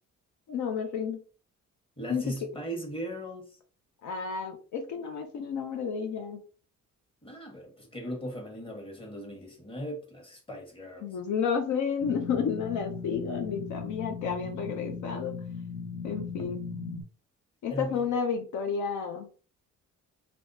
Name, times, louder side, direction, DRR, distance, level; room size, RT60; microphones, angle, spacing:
voice 1, 0.5-1.2 2.1-2.3 4.0-6.4 11.0-15.4 16.0-16.6 17.6-19.3, left 6 dB, 75° left, 0.7 m, -31 dB
voice 2, 2.0-3.5 7.2-11.0 17.7-18.0, right 1 dB, 15° left, 1.4 m, -38 dB
sound 1, 12.0-17.0, left 5 dB, 45° left, 1.1 m, -38 dB
3.4 x 3.0 x 2.7 m
cardioid pair, 90°, 30 cm